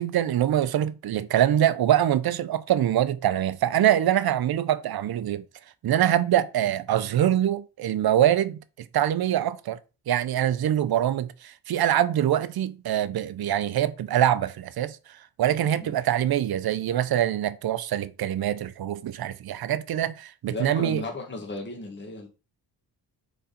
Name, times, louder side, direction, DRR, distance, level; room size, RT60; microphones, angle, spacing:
voice 1, 0.0-5.4 5.8-8.6 8.9-9.8 10.1-15.0 15.4-21.0, right 11 dB, 65° right, 0.7 m, -24 dB
voice 2, 20.5-22.3, left 2 dB, 25° left, 1.6 m, -35 dB
4.7 x 4.2 x 5.1 m
wide cardioid pair, 140°, 41 cm